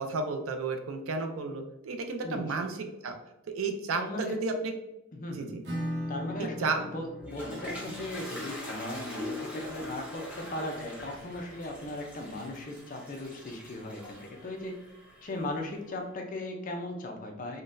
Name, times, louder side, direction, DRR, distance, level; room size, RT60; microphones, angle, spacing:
voice 1, 0.0-3.2 3.5-4.7 5.3-5.6 6.4-6.8 7.9-8.0, right 3 dB, 75° right, 6 dB, 0.4 m, -32 dB
voice 2, 4.0-4.3 5.1-5.5 6.1-14.8 15.2-17.6, left 1 dB, 40° left, 2 dB, 0.5 m, -38 dB
Acoustic guitar / Strum, 5.6-11.1, equal, 55° right, 0.8 m, -41 dB
Toilet flush, 6.9-15.8, left 1 dB, 5° right, 0.7 m, -42 dB
3.8 x 2.2 x 2.5 m, 0.92 s
head